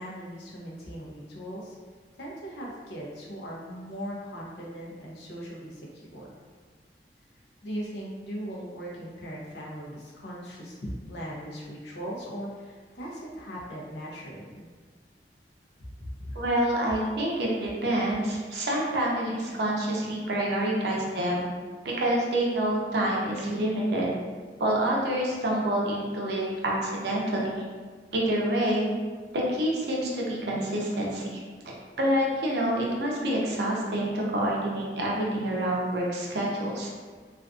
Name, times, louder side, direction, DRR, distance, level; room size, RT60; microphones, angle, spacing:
voice 1, 0.0-1.8 2.2-6.3 7.6-14.6 16.0-16.4, equal, 70° left, -4 dB, 0.6 m, -39 dB
voice 2, 16.3-21.5 21.8-24.1 24.6-27.6 28.1-28.9 29.3-31.4 31.6-36.9, right 1 dB, 65° right, -3 dB, 0.5 m, -27 dB
2.4 x 2.4 x 2.4 m, 1.5 s
head